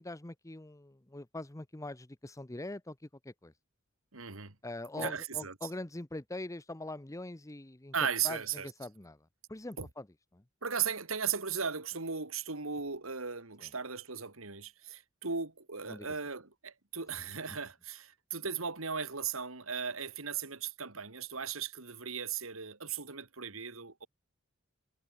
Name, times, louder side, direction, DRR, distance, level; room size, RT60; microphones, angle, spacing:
voice 1, 0.0-3.0 3.2-3.5 4.6-7.9 8.2-9.2 9.5-10.1 10.3-10.4 13.6-13.7 15.9-16.1, left 2 dB, 15° left, 0.9 m, -43 dB
voice 2, 4.1-4.5 5.0-5.5 7.9-8.7 9.8-9.9 10.6-24.1, right 6 dB, 80° right, 2.8 m, -37 dB
head